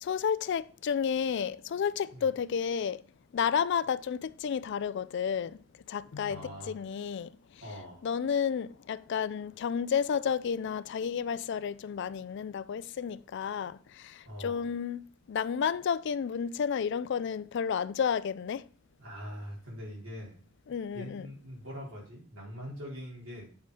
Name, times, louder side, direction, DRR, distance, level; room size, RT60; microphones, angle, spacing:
voice 1, 0.0-3.0 3.3-5.6 5.9-7.4 8.0-18.6 20.7-21.3, left 7 dB, 60° left, 0.3 m, -31 dB
voice 2, 6.3-6.8 7.6-8.0 14.2-14.7 16.4-16.5 19.0-20.4 20.9-23.5, equal, 85° right, 3.8 m, -43 dB
8.5 x 4.3 x 4.8 m
head